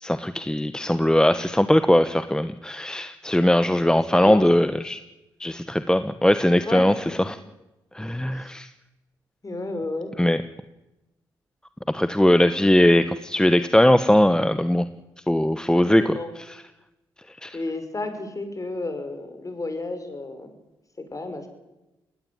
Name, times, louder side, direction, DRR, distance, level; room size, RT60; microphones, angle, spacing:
voice 1, 0.0-5.0 5.4-7.4 7.9-8.7 10.2-10.4 11.9-14.9 15.3-16.2 16.5-16.6 17.3-17.6, left 1 dB, 5° left, 11 dB, 1.2 m, -20 dB
voice 2, 3.8-4.5 6.6-7.2 8.4-8.5 9.4-10.1 15.6-16.3 17.5-20.5 21.0-21.5, left 2 dB, 35° left, 8 dB, 5.6 m, -32 dB
19.5 x 17.0 x 9.6 m, 0.98 s
supercardioid pair, 50°, 10 cm